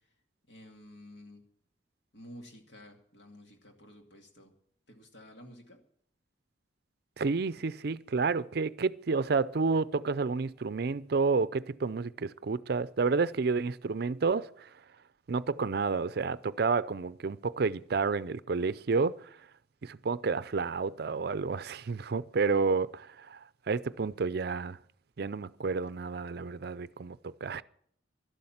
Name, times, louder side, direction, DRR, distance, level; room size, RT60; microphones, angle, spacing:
voice 1, 0.5-1.4 2.1-4.5 4.9-5.8, left 1 dB, 65° left, 2.4 m, -51 dB
voice 2, 7.2-14.7 15.3-19.2 19.8-23.4 23.7-24.8 25.2-27.6, right 4 dB, 55° right, 0.5 m, -30 dB
12.0 x 12.0 x 7.2 m
head